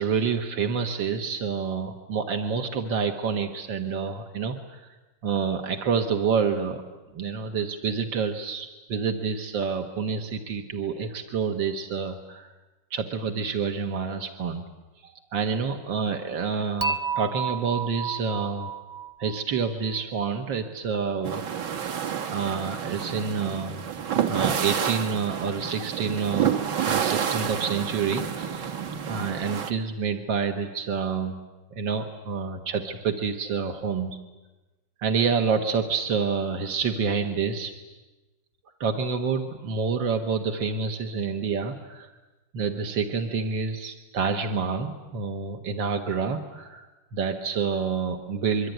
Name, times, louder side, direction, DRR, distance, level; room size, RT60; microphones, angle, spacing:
voice 1, 0.0-4.9 5.2-6.8 7.1-12.5 12.9-14.6 15.0-18.7 19.2-21.8 22.3-23.9 24.3-28.8 29.1-31.3 31.7-34.2 35.0-37.7 38.8-42.1 42.5-48.7, right 5 dB, 90° right, 4 dB, 2.1 m, -28 dB
Dishes pots and pans / Chink clink, 16.8-20.0, right 6 dB, 25° right, 0.7 m, -31 dB
sound 1, 21.2-29.7, right 8 dB, 70° right, 1.8 m, -29 dB
25.5 x 23.5 x 9.2 m, 1.1 s
omnidirectional pair, 2.0 m